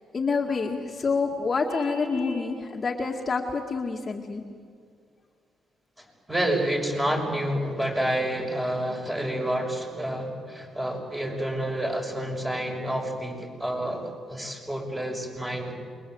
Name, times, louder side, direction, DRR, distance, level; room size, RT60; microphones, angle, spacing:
voice 1, 0.1-4.4, left 4 dB, 35° left, 1 dB, 2.1 m, -27 dB
Vehicle horn car horn honking, 1.7-2.5, right 1 dB, 80° right, 7.9 m, -37 dB
voice 2, 6.3-15.7, right 1 dB, 10° right, 1 dB, 6.6 m, -29 dB
28.0 x 23.0 x 8.0 m, 2.1 s
cardioid pair, 90°, 0 cm